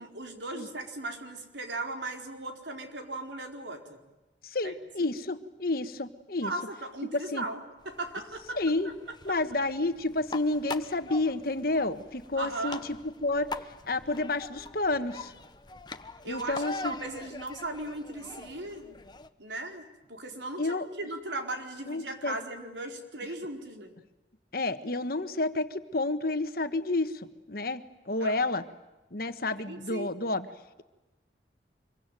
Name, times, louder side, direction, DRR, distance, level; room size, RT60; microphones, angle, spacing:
voice 1, 0.0-4.0 4.6-4.7 6.4-7.6 7.8-8.6 12.4-12.8 16.2-19.0 19.4-23.9 28.2-28.4 29.6-30.1, right 2 dB, 90° right, 3 dB, 4.5 m, -37 dB
voice 2, 4.4-6.5 7.1-7.4 8.5-8.9 9.2-13.6 13.9-15.3 16.2-16.9 20.6-20.9 21.9-22.4 24.5-28.6 29.1-30.5, left 2 dB, 55° left, 10 dB, 1.5 m, -30 dB
sound 1, 7.8-19.3, left 3 dB, 25° left, 1.0 m, -43 dB
25.5 x 23.5 x 9.2 m, 1.1 s
head